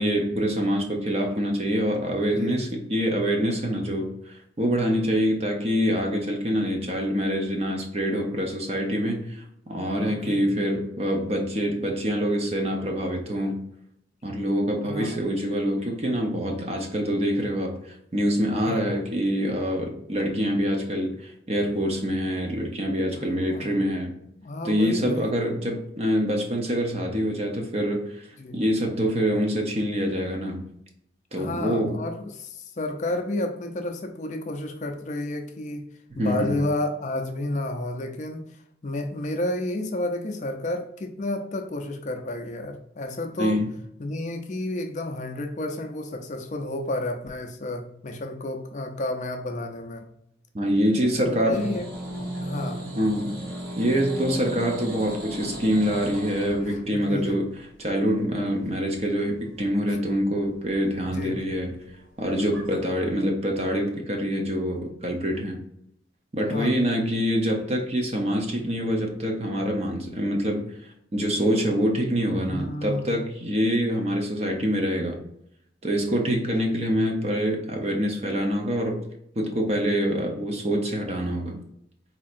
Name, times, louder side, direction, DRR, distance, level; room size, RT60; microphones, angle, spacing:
voice 1, 0.0-13.6 14.2-24.1 24.6-28.3 28.5-30.6 31.3-32.0 36.1-36.6 43.4-43.7 50.5-51.7 52.9-53.4 53.8-57.5 57.8-61.7 62.2-65.6 66.3-70.6 71.1-75.2 75.8-79.0 79.4-81.6, equal, 35° right, 2 dB, 0.7 m, -25 dB
voice 2, 2.3-2.9 9.7-10.5 14.8-15.2 18.6-18.9 23.1-23.8 24.4-25.4 28.4-28.6 31.3-35.9 36.2-38.4 38.8-43.6 44.0-50.1 51.2-52.9 56.6-57.4 61.1-61.4 66.5-66.8 72.5-73.2, left 1 dB, 40° left, 4 dB, 0.4 m, -31 dB
sound 1, 51.5-62.8, right 1 dB, 55° right, 1.0 m, -37 dB
4.2 x 2.7 x 2.5 m, 0.75 s
head